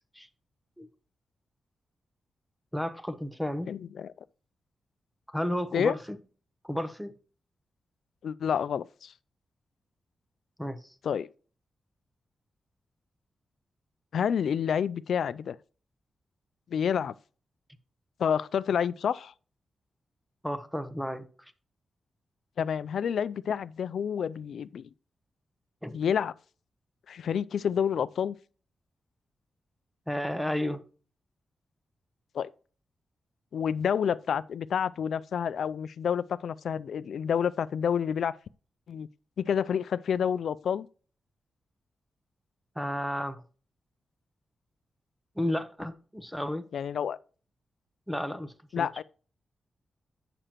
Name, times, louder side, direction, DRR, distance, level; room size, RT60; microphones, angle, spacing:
voice 1, 2.7-3.7 5.3-6.2 6.6-7.1 10.6-10.8 20.4-21.2 25.8-26.0 30.1-30.8 42.8-43.4 45.4-46.7 48.1-48.9, left 1 dB, ahead, 0.8 m, -32 dB
voice 2, 3.7-4.1 5.7-6.0 8.2-9.1 11.0-11.3 14.1-15.6 16.7-17.1 18.2-19.3 22.6-24.9 25.9-26.3 27.1-28.4 32.3-32.5 33.5-38.4 38.9-39.1 39.4-40.9 46.7-47.2 48.7-49.0, left 8 dB, 80° left, 0.3 m, -29 dB
8.8 x 6.7 x 2.9 m
wide cardioid pair, 115°, 0 cm